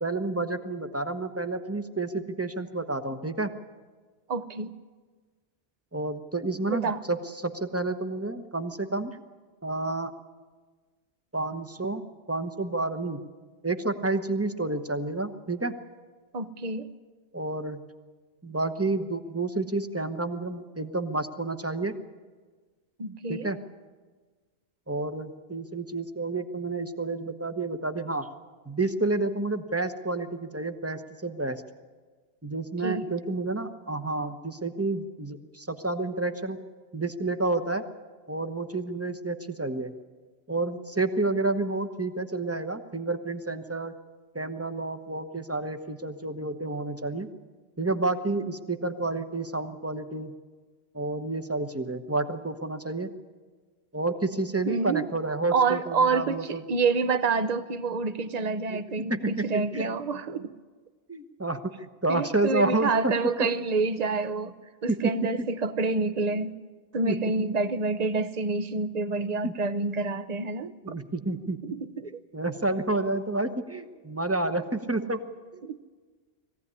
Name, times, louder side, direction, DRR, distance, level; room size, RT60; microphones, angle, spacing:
voice 1, 0.0-3.5 5.9-9.2 9.6-10.1 11.3-12.0 12.3-13.2 13.6-15.7 17.3-17.8 18.4-22.0 23.3-23.6 24.9-28.3 28.7-31.6 32.4-36.6 36.9-37.8 38.3-39.9 40.5-43.9 44.3-47.3 47.8-50.3 50.9-53.1 53.9-56.6 58.7-58.8 59.1-59.9 61.1-63.1 64.9-65.1 65.4-65.5 67.0-67.2 69.4-69.5 70.8-71.6 72.3-75.2 75.5-75.6, right 2 dB, 15° right, 8 dB, 1.0 m, -30 dB
voice 2, 4.3-4.7 6.7-7.0 16.3-16.9 23.0-23.5 32.8-33.0 54.7-55.1 55.5-60.5 62.1-64.5 64.8-66.5 66.9-71.0 71.6-72.2 75.6-75.8, right 4 dB, 40° right, 11 dB, 0.9 m, -28 dB
21.5 x 16.0 x 9.8 m, 1.4 s
omnidirectional pair, 1.1 m